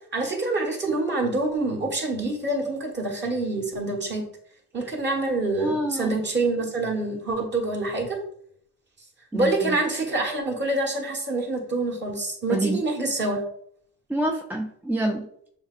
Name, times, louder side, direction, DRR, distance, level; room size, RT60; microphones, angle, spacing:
voice 1, 0.1-4.2 4.7-8.2 9.3-13.4, right 2 dB, 35° right, 0 dB, 1.5 m, -26 dB
voice 2, 5.6-6.2 9.3-9.8 12.5-12.8 14.1-15.3, right 1 dB, 5° right, 1 dB, 0.4 m, -27 dB
6.9 x 2.9 x 2.5 m, 0.68 s
cardioid pair, 90°, 30 cm